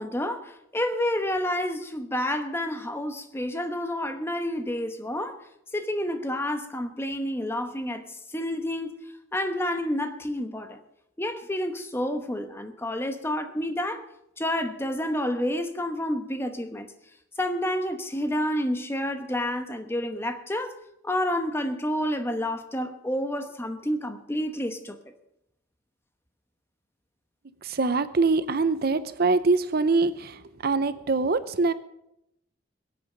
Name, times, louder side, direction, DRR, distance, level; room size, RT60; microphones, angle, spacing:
voice 1, 0.0-5.4 5.7-9.0 9.3-10.8 11.2-14.0 14.4-16.9 17.4-20.7 21.0-25.0, left 1 dB, 15° left, 1.1 m, -29 dB
voice 2, 27.6-31.7, right 3 dB, 55° right, 0.6 m, -24 dB
22.0 x 8.7 x 5.1 m
head